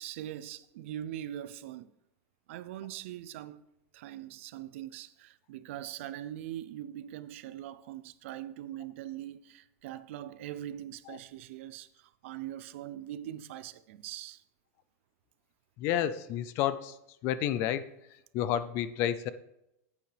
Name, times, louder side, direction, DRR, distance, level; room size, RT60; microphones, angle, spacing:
voice 1, 0.0-1.9 2.5-3.6 3.9-14.4, right 12 dB, 50° right, 0.5 m, -42 dB
voice 2, 15.8-17.0 17.2-17.9 18.3-19.3, left 10 dB, 30° left, 0.4 m, -30 dB
10.5 x 8.3 x 3.4 m
supercardioid pair, 170°, 9 cm